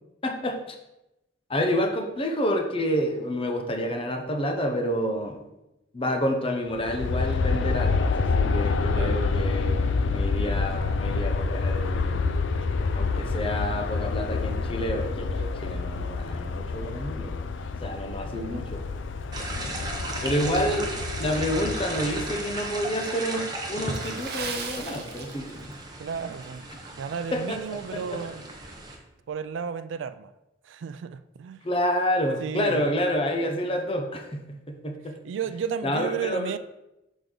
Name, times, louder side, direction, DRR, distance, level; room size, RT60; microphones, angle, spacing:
voice 1, 0.2-0.8 1.5-5.4 5.9-9.7 10.1-12.3 12.9-17.4 17.8-18.8 20.2-20.9 21.2-25.7 27.3-28.2 31.6-35.2 35.8-36.6, equal, 30° left, 0.7 m, -29 dB
Aircraft, 6.7-22.8, left 4 dB, 75° left, 0.4 m, -28 dB
voice 2, 8.9-9.2 18.2-18.6 20.4-20.8 26.0-26.7 26.9-28.4 29.3-30.3 30.6-31.6 32.4-32.8 35.2-36.6, right 7 dB, 75° right, 0.3 m, -33 dB
sound 1, 19.3-29.0, right 2 dB, 20° right, 0.8 m, -36 dB
Water / Splash splatter, 23.9-25.8 26.1-26.3 26.9-27.1 27.6-27.7, right 5 dB, 55° right, 0.7 m, -37 dB
6.2 x 5.1 x 3.8 m
head